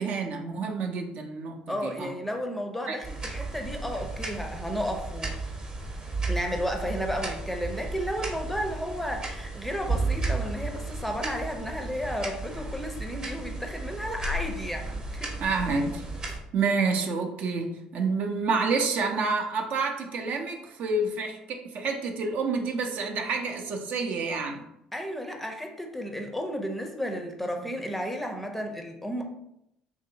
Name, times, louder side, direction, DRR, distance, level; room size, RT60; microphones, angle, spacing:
voice 1, 0.0-2.1 2.9-3.0 15.4-16.0 16.5-17.7 17.9-24.6, right 4 dB, 55° right, 3 dB, 0.5 m, -28 dB
voice 2, 1.7-5.6 6.3-15.3 24.9-29.2, equal, 5° left, 3 dB, 0.5 m, -33 dB
sound 1, 3.0-16.4, right 3 dB, 25° right, 0.7 m, -34 dB
2.9 x 2.6 x 2.7 m, 0.80 s
hypercardioid pair, 65°, 3 cm